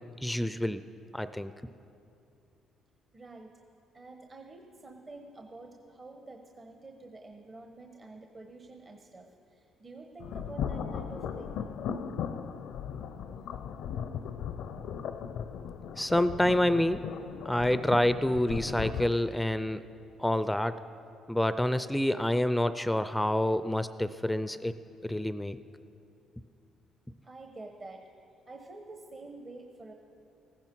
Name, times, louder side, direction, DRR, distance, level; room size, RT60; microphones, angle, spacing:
voice 1, 0.2-0.8 1.1-1.5 16.0-17.0 17.4-19.8 20.2-20.8 21.3-24.7 25.0-25.6, left 1 dB, 5° left, 13 dB, 0.4 m, -27 dB
voice 2, 3.1-3.5 3.9-9.3 9.5-11.6 27.2-28.0 28.5-29.9, right 2 dB, 40° right, 3 dB, 1.1 m, -48 dB
sound 1, 10.2-19.1, left 7 dB, 75° left, 0.5 m, -37 dB
15.0 x 13.5 x 4.6 m, 2.6 s
supercardioid pair, 75°, 0 cm